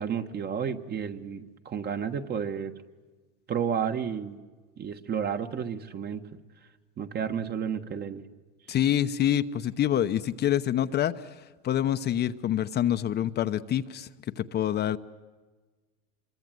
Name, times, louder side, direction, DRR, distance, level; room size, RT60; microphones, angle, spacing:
voice 1, 0.0-2.7 3.5-4.4 4.8-6.4 7.0-8.3, right 7 dB, 35° right, 8 dB, 1.6 m, -31 dB
voice 2, 8.7-14.1 14.4-15.0, left 11 dB, 35° left, 9 dB, 0.9 m, -26 dB
26.0 x 23.0 x 9.3 m, 1.3 s
supercardioid pair, 120°, 30 cm